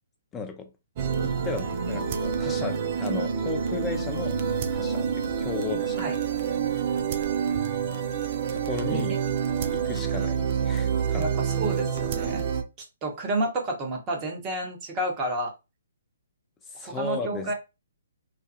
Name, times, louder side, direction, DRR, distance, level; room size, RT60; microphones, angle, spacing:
voice 1, 0.3-0.7 1.2-4.4 4.7-6.4 8.5-9.1 9.7-11.3 16.7-17.5, left 4 dB, 15° left, 0.5 m, -35 dB
sound 1, 1.0-12.6, right 7 dB, 40° right, 0.4 m, -27 dB
voice 2, 11.1-12.5 13.0-15.5 16.8-17.5, right 1 dB, 25° right, 0.9 m, -30 dB
2.6 x 2.2 x 2.3 m
figure-of-eight pair, 130°, 0 cm